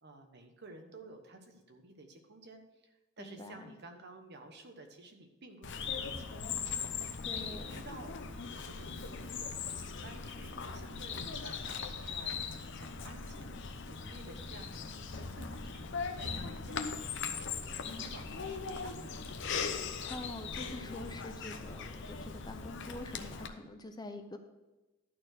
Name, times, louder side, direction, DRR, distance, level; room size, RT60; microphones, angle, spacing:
voice 1, 0.0-6.8 7.3-12.4 12.8-17.2 17.6-19.4, right 2 dB, 55° right, 5 dB, 1.2 m, -53 dB
voice 2, 3.2-3.7 7.2-7.8 19.8-24.4, left 1 dB, 20° left, 6 dB, 0.6 m, -46 dB
Bird vocalization bird call bird song, 5.6-23.5, left 5 dB, 60° left, 0.8 m, -39 dB
12.0 x 4.3 x 6.5 m, 1.1 s
head